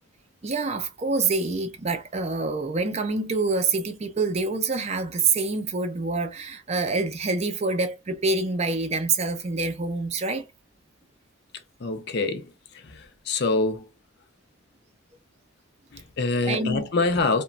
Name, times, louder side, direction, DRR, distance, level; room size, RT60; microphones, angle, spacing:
voice 1, 0.4-10.5 16.5-16.8, right 3 dB, 30° right, 0.4 m, -26 dB
voice 2, 11.8-13.9 15.9-17.4, left 3 dB, 55° left, 0.5 m, -26 dB
2.9 x 2.2 x 2.4 m
head